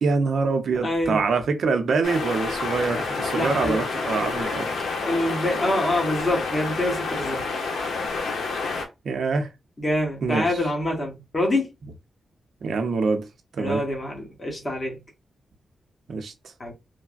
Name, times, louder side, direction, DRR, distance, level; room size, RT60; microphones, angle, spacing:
voice 1, 0.0-4.9 9.0-9.5 10.2-10.5 12.6-13.3 13.6-13.8 16.1-16.3, right 4 dB, 70° right, 0.6 m, -25 dB
voice 2, 0.8-1.3 3.3-3.8 5.0-7.5 9.8-11.7 13.6-15.0 16.6-16.7, left 1 dB, 30° left, 1.2 m, -26 dB
sound 1, 2.0-8.8, left 4 dB, 85° left, 0.7 m, -29 dB
3.2 x 2.1 x 2.4 m
cardioid pair, 85°, 0 cm